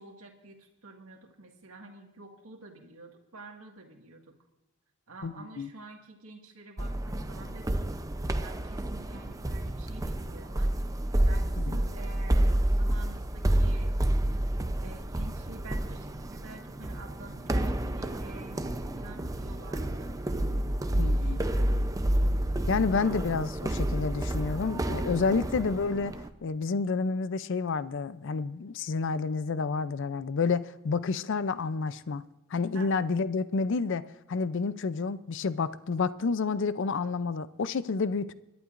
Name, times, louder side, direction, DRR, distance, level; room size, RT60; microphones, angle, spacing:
voice 1, 0.0-4.2 5.1-7.7 8.4-10.7 11.2-13.9 14.8-20.2 20.9-21.9 32.7-32.9, right 3 dB, 90° right, 1.8 m, -48 dB
voice 2, 5.2-5.7 11.7-11.8 21.0-21.4 22.7-26.1 26.4-32.2 32.5-38.3, left 4 dB, 60° left, 0.5 m, -29 dB
sound 1, 6.8-26.3, right 1 dB, 15° right, 0.5 m, -29 dB
26.5 x 11.5 x 2.5 m
head